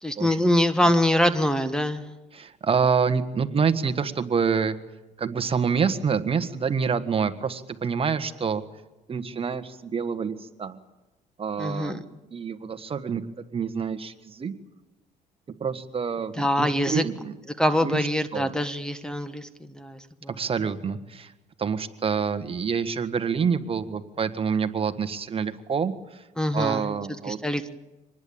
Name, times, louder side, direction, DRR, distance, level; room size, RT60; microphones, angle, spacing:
voice 1, 0.0-2.0 11.6-12.0 16.4-17.0 17.6-19.5 19.7-20.3 26.4-26.9 27.3-27.7, left 1 dB, 5° left, 11 dB, 1.4 m, -24 dB
voice 2, 2.3-4.8 5.2-8.6 9.1-10.8 11.4-12.0 12.3-13.2 13.5-14.5 15.6-17.3 17.8-18.5 20.3-21.3 21.6-26.3 26.5-27.4, right 6 dB, 35° right, 9 dB, 1.6 m, -27 dB
25.5 x 20.0 x 8.8 m, 1.0 s
cardioid pair, 110°, 17 cm